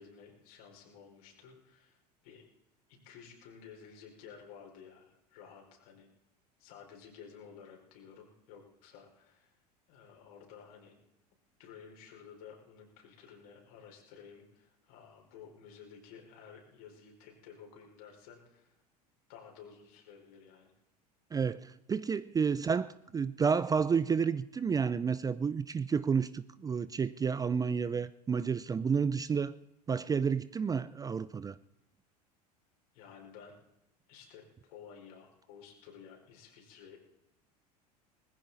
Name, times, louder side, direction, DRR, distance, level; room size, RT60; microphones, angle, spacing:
voice 1, 0.0-2.0 2.2-2.5 2.9-6.1 6.6-9.5 9.9-10.9 11.6-18.7 19.3-20.7 32.9-33.5 34.1-37.0, left 7 dB, 65° left, 4.8 m, -53 dB
voice 2, 21.3-29.6 29.9-31.6, right 6 dB, 15° right, 0.5 m, -30 dB
20.0 x 15.0 x 4.1 m
figure-of-eight pair, 80°, 21 cm